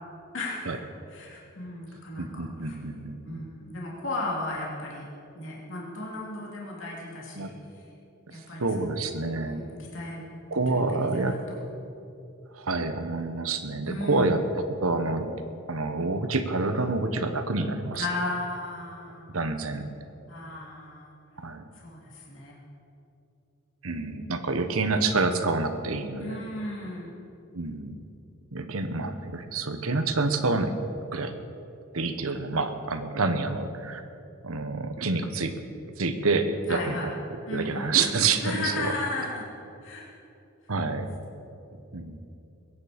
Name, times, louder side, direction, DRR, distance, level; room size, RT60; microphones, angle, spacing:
voice 1, 0.3-0.8 1.1-2.8 3.2-5.0 5.3-7.8 8.3-8.7 9.3-10.3 11.1-11.6 13.8-14.4 18.0-19.4 20.3-21.1 21.7-22.6 26.2-27.1 36.6-37.1 37.5-39.5 39.8-40.1, left 2 dB, 65° left, -4 dB, 2.8 m, -35 dB
voice 2, 2.2-3.4 7.3-7.5 8.6-9.6 10.5-11.4 12.5-14.4 14.8-15.3 15.7-18.1 19.3-19.9 21.4-21.6 23.8-26.4 27.5-28.0 28.5-30.7 31.1-31.3 31.9-34.0 34.4-35.5 36.0-37.1 37.5-38.9 40.7-41.1 41.9-42.2, right 3 dB, 85° right, 8 dB, 1.1 m, -28 dB
22.0 x 9.7 x 5.1 m, 2.7 s
head